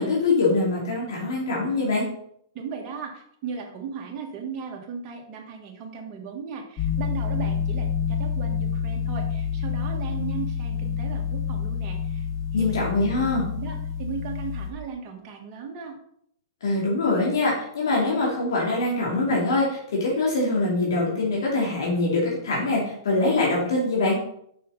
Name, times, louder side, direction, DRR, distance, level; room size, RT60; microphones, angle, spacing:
voice 1, 0.0-2.1 12.5-13.5 16.6-24.2, left 2 dB, 70° left, -4 dB, 2.6 m, -23 dB
voice 2, 2.5-12.2 12.6-12.8 13.5-16.0, right 6 dB, 40° right, 1 dB, 1.7 m, -36 dB
sound 1, 6.8-14.7, left 7 dB, 25° left, 1.8 m, -28 dB
6.2 x 5.7 x 4.1 m, 0.69 s
hypercardioid pair, 125°, 2 cm